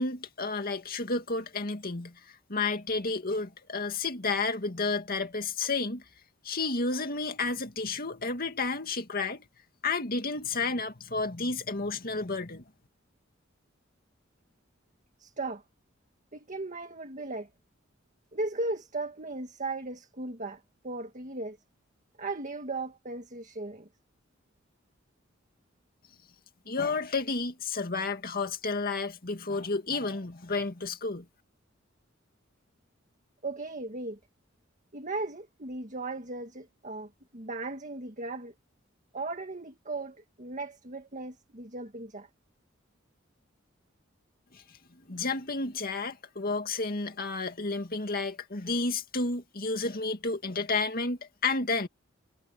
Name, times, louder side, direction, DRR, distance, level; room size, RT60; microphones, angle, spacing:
voice 1, 0.0-6.0 6.4-9.4 9.8-12.6 26.7-31.3 44.5-44.6 45.1-51.9, left 3 dB, 50° left, 2.2 m, -31 dB
voice 2, 15.2-15.6 16.3-17.5 18.3-21.6 22.2-23.9 33.4-34.2 34.9-38.5 39.1-42.3, right 2 dB, 40° right, 1.7 m, -37 dB
head